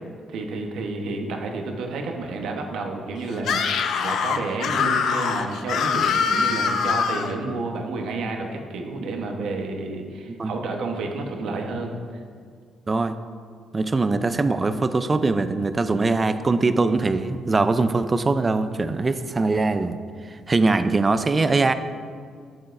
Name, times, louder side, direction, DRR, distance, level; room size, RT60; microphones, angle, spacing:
voice 1, 0.3-11.9, right 3 dB, 80° right, 3 dB, 1.0 m, -30 dB
Screaming, 3.4-7.3, left 6 dB, 75° left, 0.6 m, -23 dB
voice 2, 12.9-13.2 13.7-21.7, right 3 dB, 30° right, 11 dB, 0.4 m, -22 dB
12.0 x 8.1 x 2.6 m, 2.1 s
cardioid pair, 90°, 0 cm